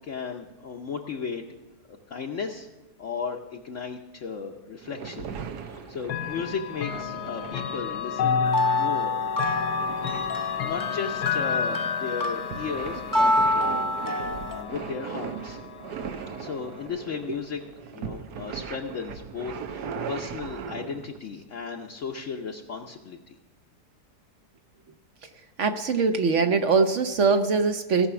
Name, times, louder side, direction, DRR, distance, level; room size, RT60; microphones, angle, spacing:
voice 1, 0.0-1.4 1.9-2.7 3.0-5.3 5.6-9.2 9.8-10.1 10.6-13.8 14.1-15.6 16.3-17.6 17.9-23.3, left 5 dB, 55° left, 1 dB, 1.0 m, -35 dB
sound 1, 4.8-21.2, right 7 dB, 85° right, 1.4 m, -39 dB
Chime / Clock, 6.0-16.9, left 7 dB, 80° left, 1.2 m, -32 dB
sound 2, 8.4-14.6, left 2 dB, 20° left, 0.5 m, -27 dB
voice 2, 25.6-28.1, right 4 dB, 55° right, 8 dB, 1.0 m, -22 dB
17.0 x 5.8 x 6.9 m, 1.1 s
omnidirectional pair, 1.7 m